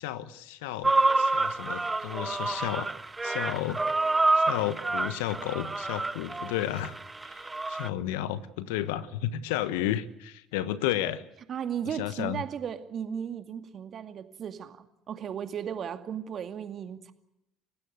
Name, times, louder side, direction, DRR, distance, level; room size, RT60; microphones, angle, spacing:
voice 1, 0.0-2.9 3.2-3.8 4.3-7.0 7.2-11.3 11.9-12.4, left 12 dB, 75° left, 1.2 m, -32 dB
sound 1, 0.8-7.9, right 2 dB, 15° right, 1.2 m, -28 dB
voice 2, 11.5-17.1, right 8 dB, 45° right, 2.2 m, -35 dB
30.0 x 16.0 x 8.0 m
hypercardioid pair, 60°, 0 cm